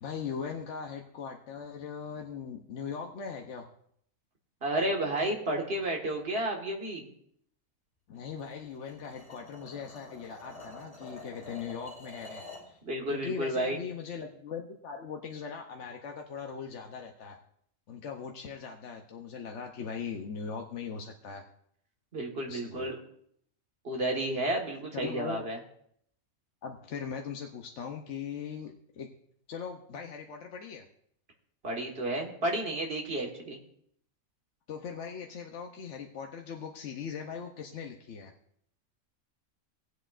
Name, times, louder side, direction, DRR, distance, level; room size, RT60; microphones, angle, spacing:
voice 1, 0.0-3.7 8.1-12.8 13.1-17.4 17.9-21.4 22.5-22.9 24.9-25.5 26.6-29.1 29.5-30.8 34.7-38.3, left 6 dB, 60° left, 2 dB, 1.0 m, -40 dB
voice 2, 4.6-7.1 12.8-13.8 22.1-23.0 23.8-25.6 31.6-33.6, right 1 dB, 45° right, 1 dB, 1.8 m, -31 dB
sound 1, 8.4-12.7, left 2 dB, 25° left, 2.1 m, -48 dB
19.0 x 8.0 x 2.5 m, 0.68 s
omnidirectional pair, 1.4 m